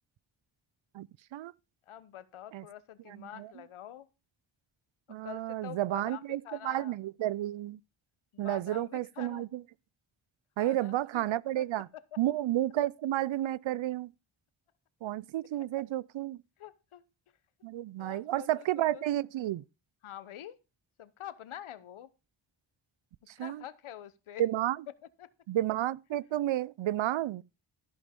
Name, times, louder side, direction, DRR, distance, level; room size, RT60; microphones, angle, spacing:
voice 1, 0.9-1.5 2.5-2.6 3.1-3.5 5.1-7.8 8.4-9.6 10.6-11.9 12.2-14.1 15.0-16.4 17.6-19.6 23.3-23.6 24.4-24.8 25.5-27.4, right 13 dB, 70° right, 0.6 m, -31 dB
voice 2, 1.9-4.1 5.2-7.0 8.3-9.5 10.6-11.6 11.9-12.2 15.8-15.9 16.6-17.0 18.0-18.7 18.9-19.0 20.0-20.6 21.0-22.1 23.4-24.4 25.2-25.3, left 11 dB, 85° left, 1.0 m, -46 dB
13.5 x 5.4 x 5.2 m
cardioid pair, 60°, 48 cm